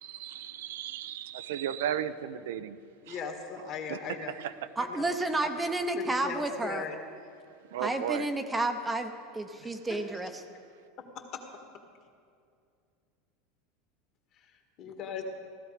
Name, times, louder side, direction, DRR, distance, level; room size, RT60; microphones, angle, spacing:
voice 1, 0.0-2.8 3.1-3.2 3.9-4.5 7.7-8.3, right 10 dB, 85° right, 12 dB, 0.6 m, -35 dB
voice 2, 3.0-4.3 4.8-5.1 5.4-5.5 6.2-7.0 9.6-10.0 11.0-11.1 11.3-11.4 14.8-15.2, left 6 dB, 40° left, 4 dB, 1.7 m, -38 dB
voice 3, 4.8-6.8 7.8-10.3, right 2 dB, 10° right, 7 dB, 0.7 m, -31 dB
16.0 x 13.5 x 5.1 m, 2.4 s
supercardioid pair, 155°, 0 cm